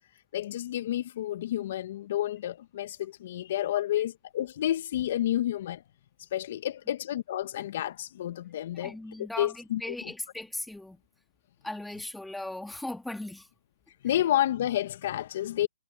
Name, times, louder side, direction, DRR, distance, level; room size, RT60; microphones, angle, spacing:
voice 1, 0.3-5.8 6.2-10.1 14.0-15.7, left 12 dB, 45° left, 1.3 m, -30 dB
voice 2, 8.8-11.0 11.6-13.5, left 1 dB, 5° left, 2.2 m, -38 dB
hypercardioid pair, 145°, 0 cm